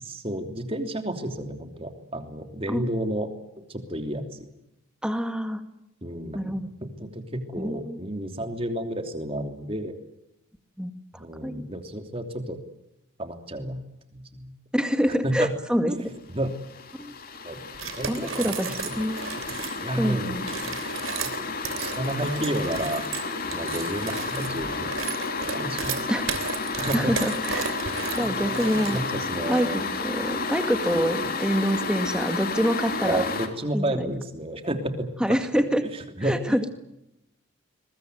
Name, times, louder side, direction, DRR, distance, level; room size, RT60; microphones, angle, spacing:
voice 1, 0.0-3.3 3.6-4.5 6.0-10.0 11.2-12.6 13.2-13.8 14.1-14.5 15.2-15.5 15.9-16.5 17.4-17.6 18.0-19.0 19.8-21.3 21.8-23.0 23.5-25.0 25.5-26.0 26.8-27.1 28.2-29.8 30.9-31.3 33.0-36.6, right 1 dB, 25° right, 6 dB, 3.1 m, -31 dB
voice 2, 5.0-5.6 6.3-6.7 7.6-8.0 10.8-10.9 11.4-11.7 14.7-15.9 17.0-17.1 18.1-19.3 20.0-20.5 26.1-26.3 26.9-27.8 28.2-29.0 29.5-33.2 33.7-34.1 35.2-35.8 36.2-36.6, equal, 5° right, 8 dB, 2.0 m, -26 dB
sound 1, 16.3-33.5, left 3 dB, 45° left, 3.1 m, -31 dB
sound 2, 17.7-19.8 20.4-29.3, right 6 dB, 80° right, 3.2 m, -34 dB
22.5 x 21.5 x 9.4 m, 0.87 s
head